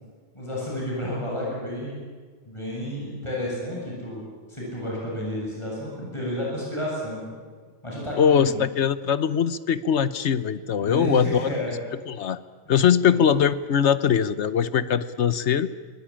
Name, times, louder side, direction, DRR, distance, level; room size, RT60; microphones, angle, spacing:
voice 1, 0.3-1.9 2.4-7.4 7.8-8.6 10.8-11.7 13.1-13.3, left 1 dB, 25° left, -4 dB, 8.0 m, -31 dB
voice 2, 8.2-11.5 12.1-12.4 12.7-15.7, left 8 dB, 75° left, 15 dB, 1.2 m, -21 dB
23.5 x 19.5 x 8.8 m, 1.5 s
omnidirectional pair, 1.2 m